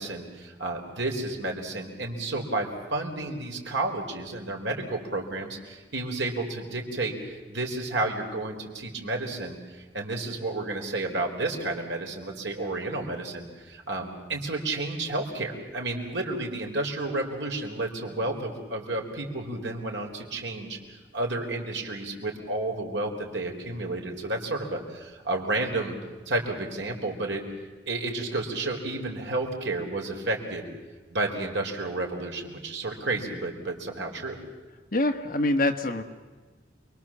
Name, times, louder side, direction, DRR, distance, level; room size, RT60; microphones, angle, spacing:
voice 1, 0.0-20.8 21.1-26.0 26.3-27.4 27.9-30.7 31.1-34.4, right 2 dB, 80° right, 2 dB, 4.4 m, -31 dB
voice 2, 34.9-36.0, left 2 dB, 50° left, 5 dB, 1.7 m, -25 dB
29.0 x 22.5 x 7.5 m, 1.3 s
head